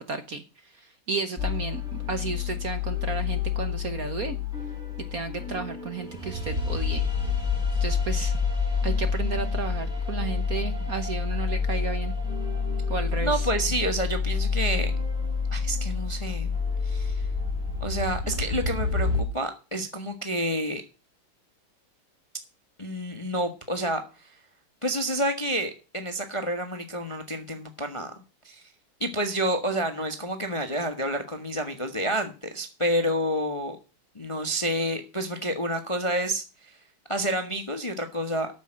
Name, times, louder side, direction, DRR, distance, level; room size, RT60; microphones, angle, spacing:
voice 1, 0.0-4.4 5.1-7.0 7.8-8.4 8.8-12.1 12.9-13.5, right 5 dB, 50° right, 9 dB, 1.2 m, -33 dB
sound 1, 1.4-19.2, left 5 dB, ahead, 4.9 m, -28 dB
voice 2, 13.2-14.9 15.5-16.6 16.8-17.3 17.8-20.8 22.8-24.3 24.8-28.1 28.4-28.6 29.0-33.8 34.1-36.8 37.1-38.5, right 1 dB, 20° left, 7 dB, 0.9 m, -29 dB
8.9 x 7.3 x 8.7 m, 0.31 s
omnidirectional pair, 2.4 m